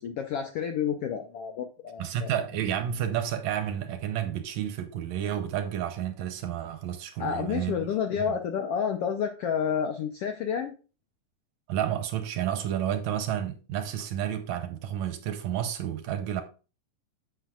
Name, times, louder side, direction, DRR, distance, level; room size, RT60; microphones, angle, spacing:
voice 1, 0.0-2.3 7.2-10.7, left 7 dB, 80° left, 1.3 m, -30 dB
voice 2, 2.0-7.9 8.3-8.4 11.7-16.4, right 10 dB, 75° right, 1.9 m, -31 dB
9.3 x 7.7 x 2.4 m
omnidirectional pair, 3.6 m